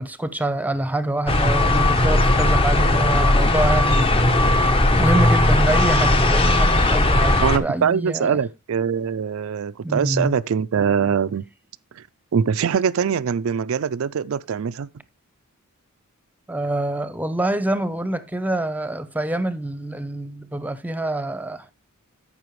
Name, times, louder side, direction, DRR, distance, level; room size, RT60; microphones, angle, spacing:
voice 1, 0.0-4.2 5.0-8.4 9.8-10.4 16.5-21.7, right 1 dB, 5° right, 0.7 m, -25 dB
sound 1, 1.3-7.6, left 1 dB, 25° left, 0.8 m, -17 dB
voice 2, 7.4-11.4 12.0-12.1 12.3-14.9, right 7 dB, 65° right, 0.4 m, -23 dB
14.0 x 5.6 x 3.1 m
head